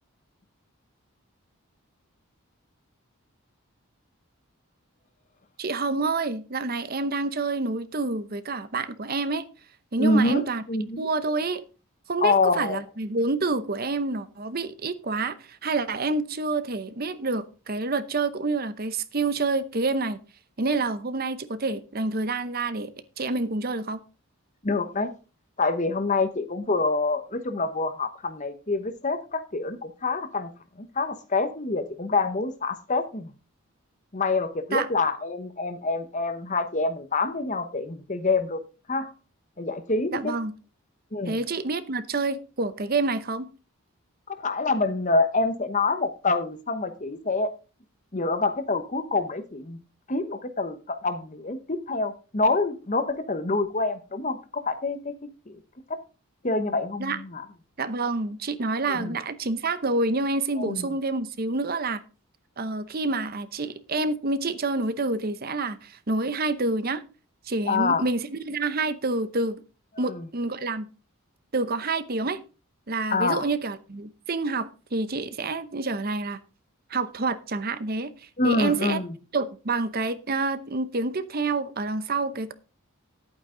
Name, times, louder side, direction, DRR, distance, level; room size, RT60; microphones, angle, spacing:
voice 1, 5.6-9.4 9.9-10.6 11.0-11.6 12.1-20.2 20.6-22.9 23.2-24.0 34.7-34.9 40.1-40.5 41.3-43.5 57.0-57.2 57.8-62.0 62.6-67.0 67.5-69.6 70.0-70.9 71.5-72.4 72.9-76.4 76.9-78.1 78.4-79.0 79.3-82.5, right 3 dB, 45° right, 0.8 m, -28 dB
voice 2, 10.0-11.1 12.2-12.8 24.6-25.1 25.6-30.5 30.8-33.3 34.1-38.6 38.9-39.1 39.6-40.3 41.1-41.4 44.3-47.5 48.1-49.8 50.1-55.1 55.5-55.6 55.9-56.0 56.4-57.5 58.9-59.1 60.6-60.9 67.7-68.0 70.0-70.3 73.1-73.4 78.4-79.1, left 3 dB, 35° left, 1.0 m, -26 dB
11.0 x 8.8 x 3.8 m
head